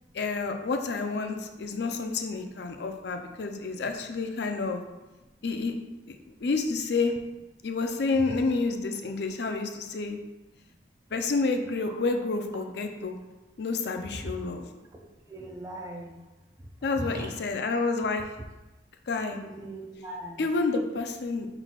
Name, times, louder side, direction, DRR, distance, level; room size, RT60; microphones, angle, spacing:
voice 1, 0.1-4.8 5.4-5.7 6.1-7.2 7.6-10.2 11.1-13.2 13.6-14.7 16.8-18.2 19.1-19.4 20.4-21.5, left 3 dB, 60° left, 5 dB, 0.4 m, -29 dB
voice 2, 15.3-16.2 17.0-17.4 19.3-20.5, right 1 dB, 20° right, 1 dB, 0.4 m, -39 dB
5.7 x 3.9 x 2.3 m, 1.1 s
head